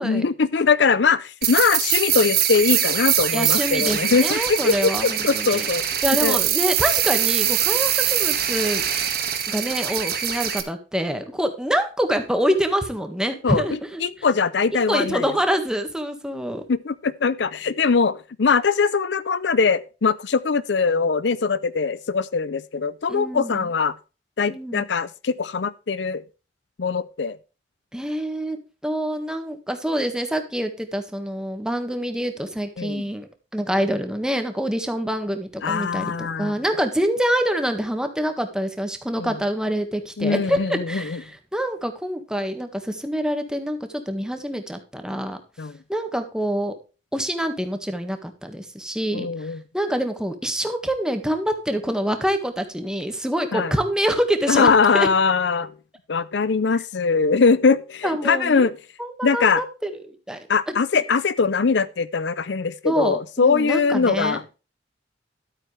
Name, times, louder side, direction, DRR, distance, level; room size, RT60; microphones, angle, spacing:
voice 1, 0.0-6.4 13.4-15.3 16.7-23.9 24.4-26.2 26.8-27.4 32.8-33.0 35.6-36.5 39.2-39.3 40.2-41.2 45.6-45.8 49.1-49.6 53.5-53.7 54.5-55.7 56.1-58.7 59.2-59.6 60.5-64.4, left 5 dB, 65° left, 0.6 m, -21 dB
sound 1, 1.4-10.6, right 10 dB, 55° right, 1.7 m, -23 dB
voice 2, 3.3-5.7 6.0-8.8 9.5-14.3 14.9-16.6 23.1-23.7 24.5-24.8 27.9-45.4 45.9-46.7 47.1-55.1 58.0-58.7 59.0-60.4 60.7-60.8 62.8-64.4, equal, 5° right, 1.6 m, -26 dB
12.5 x 8.7 x 3.3 m
head